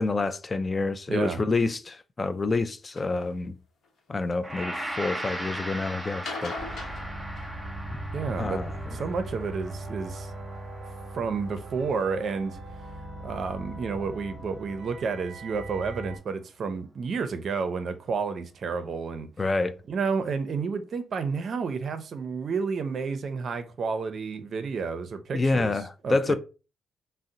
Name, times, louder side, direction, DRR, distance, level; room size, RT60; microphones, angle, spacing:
voice 1, 0.0-3.6 4.1-6.6 8.4-8.7 19.4-19.7 25.3-26.3, left 3 dB, 30° left, 0.3 m, -27 dB
voice 2, 1.1-1.4 8.1-8.6 8.9-10.3 11.1-12.6 13.2-19.3 19.9-25.7 26.0-26.3, right 5 dB, 50° right, 0.5 m, -30 dB
sound 1, 3.0-3.1 3.8-4.5 6.1-8.1 9.6-10.2 10.9-11.0 11.6-11.7 12.0-12.1 12.3-12.4, left 3 dB, 65° left, 0.8 m, -40 dB
Gong, 4.4-13.6, right 1 dB, 5° right, 0.6 m, -39 dB
sound 2, 6.6-16.2, right 1 dB, 25° right, 1.0 m, -39 dB
2.6 x 2.0 x 3.7 m
cardioid pair, 90°, 0 cm